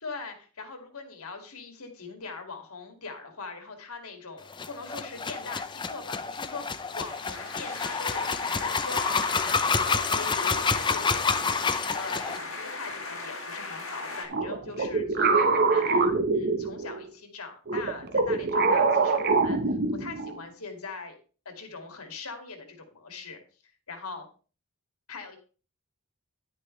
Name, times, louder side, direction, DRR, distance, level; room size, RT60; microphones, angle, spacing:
voice 1, 0.0-21.1 21.5-23.4 23.9-24.3 25.1-25.4, left 4 dB, 85° left, 5 dB, 2.4 m, -41 dB
sound 1, 4.5-12.4, left 5 dB, 20° left, 0.6 m, -28 dB
sound 2, 6.8-14.2, left 3 dB, 70° left, 2.6 m, -38 dB
sound 3, 14.3-17.1 17.7-20.4, right 4 dB, 45° right, 1.0 m, -24 dB
10.0 x 9.7 x 3.2 m, 0.37 s
head